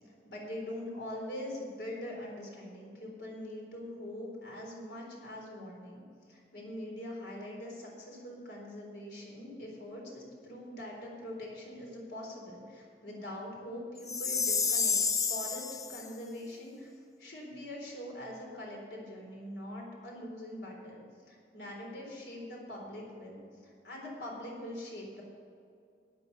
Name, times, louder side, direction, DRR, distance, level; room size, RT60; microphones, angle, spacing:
voice 1, 0.2-6.0 6.3-15.0 15.3-16.9 17.2-21.0 21.3-25.2, left 1 dB, 80° left, -1 dB, 3.9 m, -43 dB
Chime, 14.1-16.1, left 5 dB, 20° left, 0.4 m, -30 dB
12.0 x 9.1 x 6.8 m, 2.4 s
head